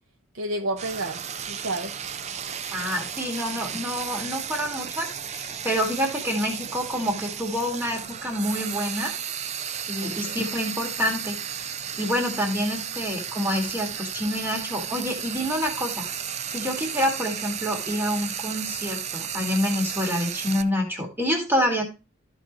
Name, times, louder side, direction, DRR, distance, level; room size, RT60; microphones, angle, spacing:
voice 1, 0.3-2.0 10.0-10.4, right 1 dB, 60° right, 1.0 m, -31 dB
Frying (food), 0.8-20.6, right 8 dB, 30° right, 0.4 m, -34 dB
voice 2, 2.7-9.1 9.9-11.4 12.0-16.1 16.5-21.9, equal, 10° right, 2.1 m, -27 dB
13.5 x 5.7 x 3.1 m
head